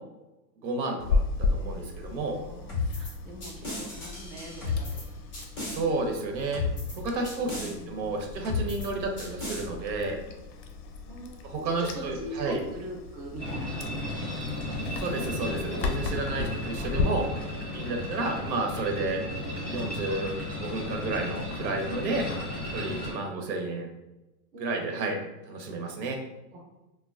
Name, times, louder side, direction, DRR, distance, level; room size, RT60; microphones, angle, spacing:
voice 1, 0.6-2.4 5.7-6.6 7.0-10.2 11.4-12.6 15.0-17.3 17.7-19.2 19.7-20.3 20.6-22.2 22.7-23.9 24.6-25.2 25.5-26.2, right 3 dB, 80° right, 3 dB, 0.8 m, -31 dB
Chewing mastication, 1.0-17.0, left 4 dB, 90° left, 0.6 m, -35 dB
voice 2, 2.3-5.0 7.5-8.2 11.1-11.4 11.6-14.4 24.5-25.3 26.5-26.6, right 1 dB, 40° right, -1 dB, 0.5 m, -42 dB
sound 1, 2.7-3.1 3.4-5.0 5.3-5.8 6.5-7.0 7.2-7.7 8.4-8.9 9.2-9.6, left 4 dB, 25° left, 0.3 m, -33 dB
sound 2, 13.4-23.1, left 1 dB, ahead, 0.7 m, -34 dB
3.1 x 2.2 x 2.3 m, 1.0 s
supercardioid pair, 150°, 50 cm